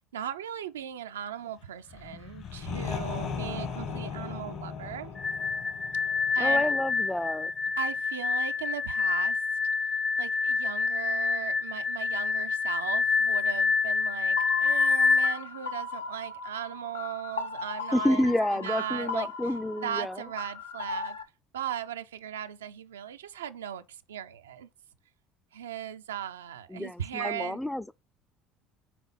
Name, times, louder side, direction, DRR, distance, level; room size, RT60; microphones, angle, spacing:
voice 1, 0.1-5.1 6.3-6.7 7.8-9.4 10.2-21.2 21.5-24.7 25.5-27.6, right 10 dB, 85° right, 0.5 m, -38 dB
sound 1, 1.9-7.6, left 6 dB, 60° left, 2.0 m, -38 dB
sound 2, 5.2-15.3, left 4 dB, 35° left, 0.8 m, -27 dB
voice 2, 6.4-7.5 17.9-20.2 26.7-27.9, left 1 dB, 5° left, 0.4 m, -29 dB
sound 3, 14.4-21.2, left 5 dB, 90° left, 0.8 m, -38 dB
5.9 x 4.0 x 5.3 m
hypercardioid pair, 65°, 0 cm